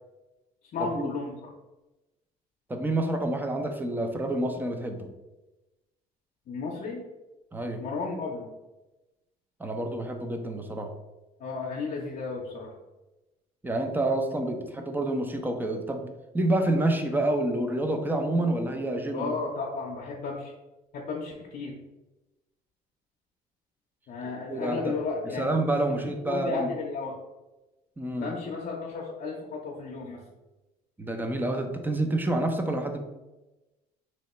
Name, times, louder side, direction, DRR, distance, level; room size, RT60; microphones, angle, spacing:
voice 1, 0.7-1.3 6.5-7.0 7.8-8.5 11.4-12.7 19.1-20.5 20.9-21.7 24.1-25.6 26.3-27.2 28.2-30.2, left 4 dB, 55° left, -3 dB, 0.6 m, -33 dB
voice 2, 2.7-5.1 7.5-7.8 9.6-10.9 13.6-16.1 16.3-19.3 24.2-24.9 25.4-26.7 28.0-28.3 31.0-33.0, right 1 dB, 10° right, 4 dB, 0.5 m, -28 dB
3.0 x 2.8 x 4.2 m, 1.1 s
cardioid pair, 110°, 17 cm